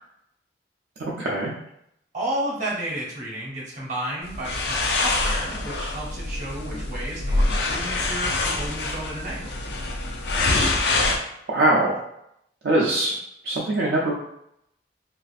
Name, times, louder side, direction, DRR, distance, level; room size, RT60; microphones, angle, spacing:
voice 1, 1.0-1.5 11.5-12.0 12.6-13.1 13.4-14.1, right 1 dB, 60° right, -5 dB, 0.4 m, -22 dB
voice 2, 2.1-9.5, right 1 dB, 45° right, -4 dB, 0.8 m, -32 dB
sound 1, 4.3-11.2, left 2 dB, 70° left, 0.4 m, -25 dB
2.4 x 2.4 x 2.3 m, 0.77 s
head